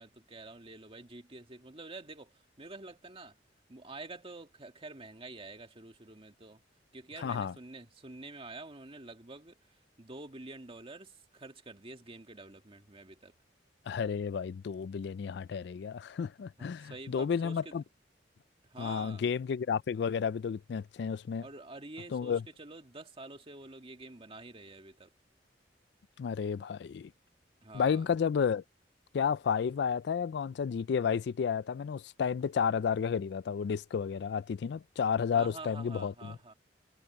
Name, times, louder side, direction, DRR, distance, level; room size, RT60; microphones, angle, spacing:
voice 1, 0.0-3.4 3.7-6.6 6.9-9.6 10.0-13.3 16.6-17.8 18.6-19.3 21.4-25.1 27.6-28.1 35.3-36.5, right 2 dB, 30° right, 2.0 m, -48 dB
voice 2, 7.2-7.5 13.9-17.8 18.8-21.5 22.1-22.4 26.2-27.1 27.7-28.6 29.1-36.4, left 6 dB, 70° left, 0.3 m, -32 dB
head